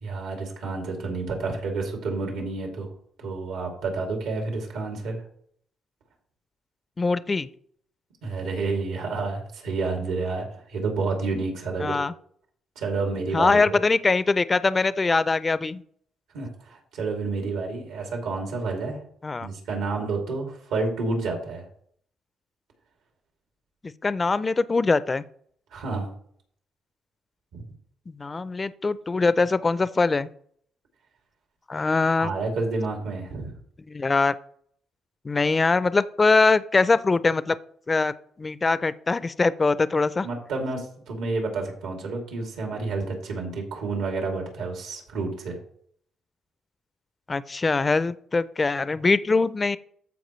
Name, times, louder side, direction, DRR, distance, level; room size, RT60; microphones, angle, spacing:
voice 1, 0.0-2.9 3.2-5.2 8.2-12.0 12.8-13.7 16.3-19.0 19.4-21.6 25.7-26.1 27.5-27.6 32.2-33.5 40.2-45.6, right 3 dB, 90° right, 2 dB, 2.7 m, -29 dB
voice 2, 7.0-7.5 11.8-12.1 13.3-15.8 19.2-19.5 24.0-25.2 28.1-30.3 31.7-32.3 33.9-34.3 35.2-37.6 37.9-38.1 38.4-40.3 47.3-49.8, left 3 dB, 30° left, 16 dB, 0.4 m, -22 dB
14.0 x 4.7 x 3.2 m, 0.62 s
cardioid pair, 90°, 0 cm